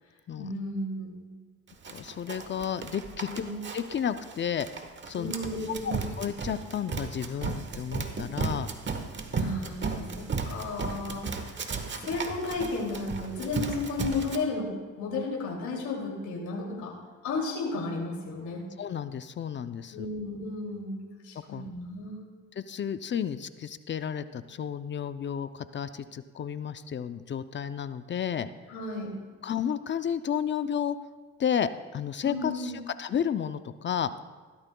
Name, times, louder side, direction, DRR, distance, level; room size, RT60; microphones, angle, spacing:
voice 1, 0.4-1.2 3.3-3.6 5.1-6.0 9.3-16.9 17.2-18.7 19.9-22.2 28.7-29.2 32.2-32.8, left 3 dB, 75° left, -1 dB, 2.6 m, -34 dB
Run, 1.8-14.4, right 4 dB, 40° right, 1.1 m, -35 dB
voice 2, 1.9-3.4 3.7-4.7 5.1-5.3 5.8-8.7 18.8-20.1 21.5-21.7 22.6-28.5 29.4-31.0 31.4-32.7 33.0-34.1, left 8 dB, 40° left, 12 dB, 0.5 m, -32 dB
16.0 x 13.0 x 2.3 m, 1.4 s
cardioid pair, 90°, 30 cm